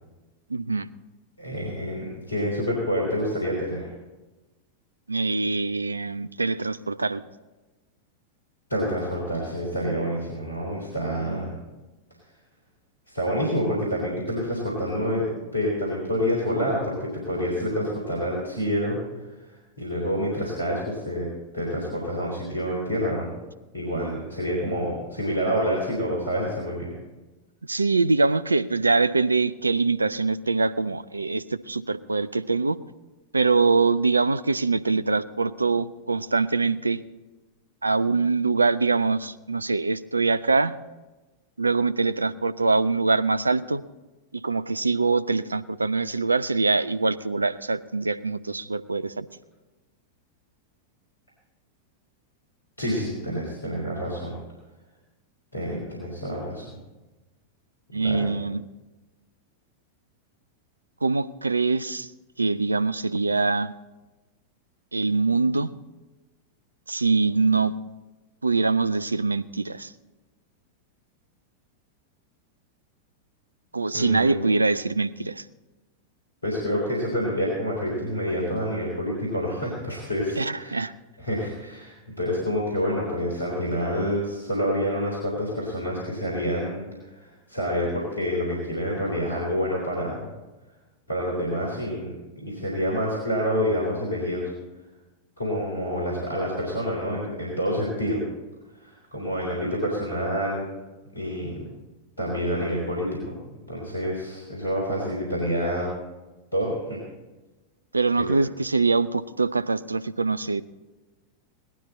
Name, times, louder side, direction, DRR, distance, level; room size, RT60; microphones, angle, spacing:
voice 1, 0.5-0.9 5.1-7.2 27.7-32.8 33.3-37.0 37.8-40.7 41.6-43.8 44.3-49.3 57.9-58.7 61.0-62.1 62.4-63.7 64.9-65.7 66.9-67.7 68.4-69.9 73.7-75.4 80.4-80.9 107.9-110.6, right 3 dB, 80° right, 16 dB, 0.5 m, -23 dB
voice 2, 1.4-3.9 8.7-11.6 13.1-19.0 19.5-21.3 21.5-23.3 23.7-26.9 52.8-54.4 55.5-56.6 57.9-58.3 73.9-74.4 76.4-80.8 81.2-86.8 87.1-90.3 91.1-94.5 95.4-98.2 98.8-100.7 101.2-101.7 102.2-103.3 103.7-105.9 106.5-107.0 108.2-108.3, equal, 80° left, -3 dB, 3.5 m, -28 dB
18.0 x 12.5 x 4.2 m, 1.1 s
figure-of-eight pair, 90°, 0 cm